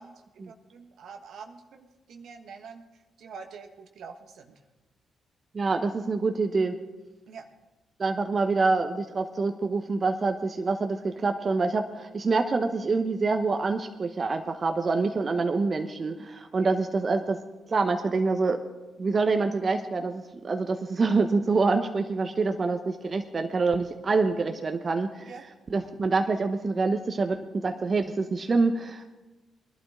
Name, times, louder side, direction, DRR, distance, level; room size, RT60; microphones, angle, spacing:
voice 1, 0.0-4.6 7.3-7.5 16.6-16.8 25.2-25.4, right 5 dB, 70° right, 6 dB, 1.2 m, -46 dB
voice 2, 5.5-6.8 8.0-17.4 17.7-18.6 19.0-25.3 25.7-29.2, right 3 dB, 45° right, 6 dB, 1.0 m, -26 dB
21.0 x 12.0 x 3.7 m, 1.1 s
hypercardioid pair, 40°, 0 cm